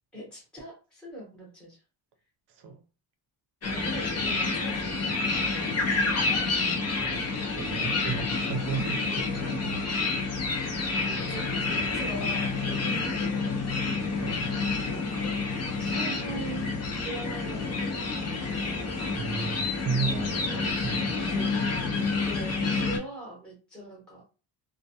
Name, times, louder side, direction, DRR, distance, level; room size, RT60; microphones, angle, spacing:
voice 1, 0.1-1.8 3.7-5.0 5.5-5.9 10.8-13.6 14.9-15.4 15.8-16.7 16.9-18.1 20.5-21.6 21.9-24.2, right 1 dB, ahead, 0.8 m, -42 dB
sound 1, 3.6-23.0, left 3 dB, 35° left, 0.5 m, -29 dB
voice 2, 6.8-7.3 7.5-10.0 14.2-14.4 19.2-21.3, right 5 dB, 55° right, 0.6 m, -34 dB
2.2 x 2.2 x 2.7 m
wide cardioid pair, 170°, 48 cm